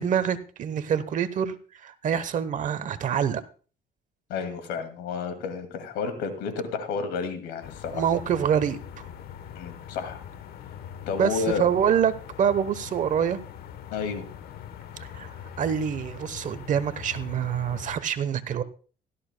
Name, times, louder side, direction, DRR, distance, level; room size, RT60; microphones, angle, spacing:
voice 1, 0.0-1.5 1.8-3.4 7.9-8.8 11.2-13.4 15.0-15.3 15.6-18.6, right 8 dB, 50° right, 13 dB, 1.0 m, -26 dB
voice 2, 4.3-8.1 9.5-10.2 11.1-11.7 13.9-14.3, left 5 dB, 90° left, 8 dB, 2.4 m, -31 dB
sound 1, 7.6-18.0, left 9 dB, 65° left, 1.1 m, -42 dB
16.5 x 13.0 x 2.2 m, 0.38 s
cardioid pair, 110°, 17 cm